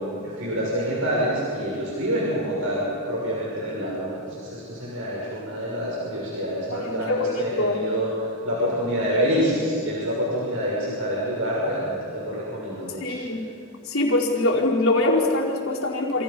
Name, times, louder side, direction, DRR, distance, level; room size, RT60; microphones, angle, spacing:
voice 1, 0.0-8.1 8.4-13.2, equal, 75° right, -5 dB, 6.6 m, -27 dB
voice 2, 6.7-7.8 13.0-13.4 13.8-16.2, left 2 dB, 75° left, -2 dB, 4.8 m, -23 dB
29.5 x 27.5 x 5.5 m, 2.7 s
head